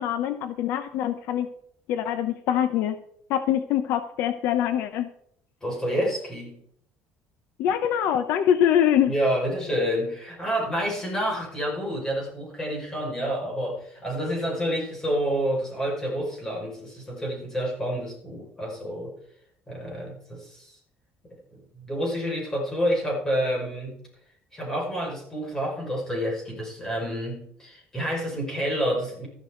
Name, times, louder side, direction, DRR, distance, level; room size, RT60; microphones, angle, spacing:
voice 1, 0.0-1.5 1.9-3.0 3.3-5.1 7.6-9.1, left 10 dB, 65° left, 10 dB, 0.9 m, -24 dB
voice 2, 5.6-6.6 9.1-19.1 19.7-20.8 21.5-24.0 24.5-29.3, equal, 15° left, -1 dB, 5.5 m, -28 dB
14.0 x 12.0 x 3.9 m, 0.68 s
cardioid pair, 160°, 4 cm